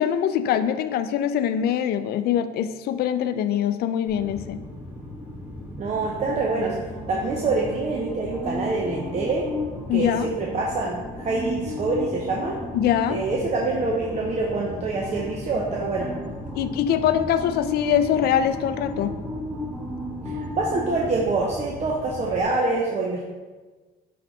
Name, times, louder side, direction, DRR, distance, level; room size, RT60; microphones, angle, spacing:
voice 1, 0.0-4.6 9.9-10.3 12.7-13.2 16.6-19.1, left 9 dB, 70° left, 11 dB, 0.4 m, -23 dB
sound 1, 4.1-22.4, left 1 dB, 10° right, 1.5 m, -34 dB
voice 2, 5.8-6.8 7.1-9.5 9.9-12.6 13.1-16.1 20.3-23.2, right 3 dB, 40° right, -2 dB, 0.8 m, -26 dB
8.3 x 4.0 x 3.2 m, 1.3 s
cardioid pair, 110°, 17 cm